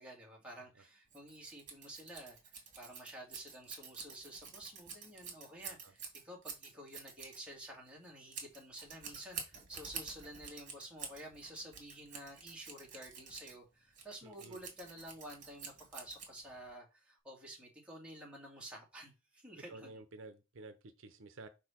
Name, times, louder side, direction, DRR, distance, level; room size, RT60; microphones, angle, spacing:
voice 1, 0.0-20.0, right 1 dB, 5° right, 2.1 m, -51 dB
Scissors, 1.1-16.7, right 6 dB, 40° right, 2.3 m, -49 dB
voice 2, 14.2-14.6 19.7-21.5, right 2 dB, 70° right, 0.7 m, -52 dB
4.8 x 4.4 x 5.7 m
head